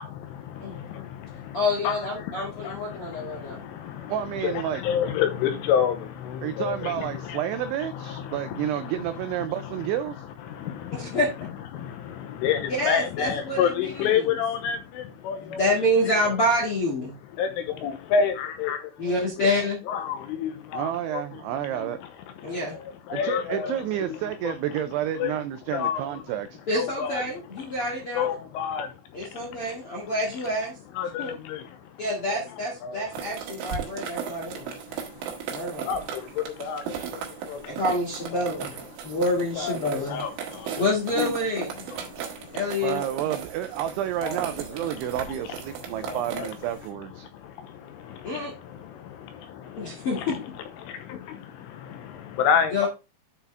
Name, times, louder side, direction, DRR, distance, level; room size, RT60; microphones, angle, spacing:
voice 1, 0.0-7.4 7.8-8.9 9.2-9.3 9.6-9.9 10.5-11.2 11.7-15.7 17.4-19.5 19.9-21.2 21.5-22.0 22.4-23.8 24.1-24.2 24.4-24.6 25.2-25.4 25.7-26.2 26.8-27.2 27.6-27.7 28.1-28.9 29.4-29.8 30.9-31.9 32.3-32.4 32.8-33.0 34.3-37.8 38.3-38.5 39.0-39.2 39.6-40.8 41.1-41.3 41.9-42.6 44.2-44.4 44.8-44.9 45.9-46.5 47.3-50.3 50.8-52.9, left 7 dB, 80° left, 3.4 m, -30 dB
voice 2, 1.5-3.6 10.9-11.3 12.7-14.4 15.4-17.2 19.0-19.8 22.4-22.8 26.7-28.3 29.1-30.7 31.2-31.4 32.0-34.6 35.5-35.9 37.6-38.8 39.0-40.2 40.8-41.7 42.5-43.0 48.2-48.5 49.8-50.4 52.7-52.9, left 1 dB, 60° left, 1.4 m, -27 dB
voice 3, 4.1-4.8 6.4-10.3 20.7-22.0 23.1-26.6 42.8-47.3, right 11 dB, 90° right, 2.6 m, -30 dB
sound 1, 33.1-46.9, right 7 dB, 65° right, 3.5 m, -37 dB
11.0 x 4.7 x 3.3 m
omnidirectional pair, 6.0 m